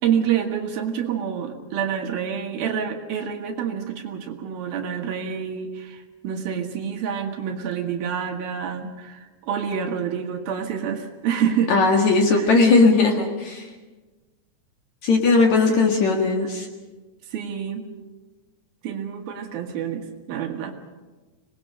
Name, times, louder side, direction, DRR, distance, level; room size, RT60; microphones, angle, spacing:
voice 1, 0.0-11.7 12.3-12.6 15.7-15.9 17.3-17.8 18.8-20.8, right 8 dB, 65° right, 4 dB, 3.2 m, -27 dB
voice 2, 11.7-13.7 15.0-16.7, left 3 dB, 55° left, 2 dB, 2.5 m, -18 dB
25.5 x 20.0 x 6.6 m, 1.2 s
omnidirectional pair, 4.7 m